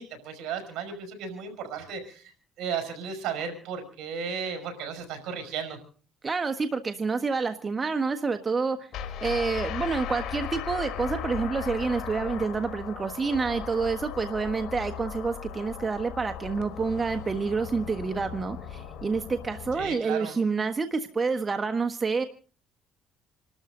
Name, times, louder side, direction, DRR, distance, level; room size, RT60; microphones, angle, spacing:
voice 1, 0.0-5.8 19.7-20.4, right 6 dB, 80° right, 5 dB, 5.9 m, -35 dB
voice 2, 6.2-8.9 9.2-22.2, right 4 dB, 30° right, 7 dB, 1.3 m, -28 dB
sound 1, 8.9-19.9, left 9 dB, 70° left, 2.6 m, -37 dB
28.0 x 13.0 x 3.9 m, 0.42 s
supercardioid pair, 80°, 0 cm